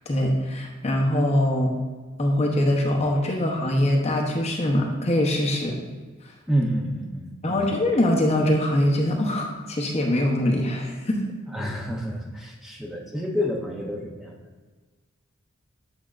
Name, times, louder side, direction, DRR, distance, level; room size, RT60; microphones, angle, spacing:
voice 1, 0.1-1.7 2.2-5.8 7.4-11.2, left 1 dB, 30° left, 1 dB, 0.8 m, -23 dB
voice 2, 6.5-7.7 11.5-14.4, equal, ahead, -2 dB, 0.6 m, -29 dB
8.3 x 5.7 x 2.5 m, 1.4 s
head